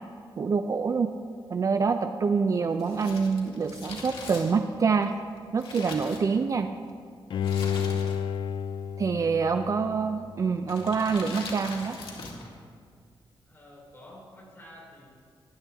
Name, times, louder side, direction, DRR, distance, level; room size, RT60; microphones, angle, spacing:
voice 1, 0.4-1.1 1.5-5.1 5.5-6.7 9.0-12.0, right 5 dB, 35° right, 8 dB, 0.4 m, -26 dB
Crumpling crinkling, 2.7-6.7 7.4-8.4 8.7-8.8 9.6-10.0 10.6-12.5 12.8-12.9, left 3 dB, 85° left, 1.9 m, -42 dB
Bowed string instrument, 7.3-10.4 10.8-10.9, left 8 dB, 65° left, 0.4 m, -31 dB
voice 2, 9.2-9.6 13.5-15.1, left 1 dB, 25° left, -4 dB, 3.6 m, -50 dB
19.0 x 10.0 x 3.4 m, 2.1 s
wide cardioid pair, 175°, 9 cm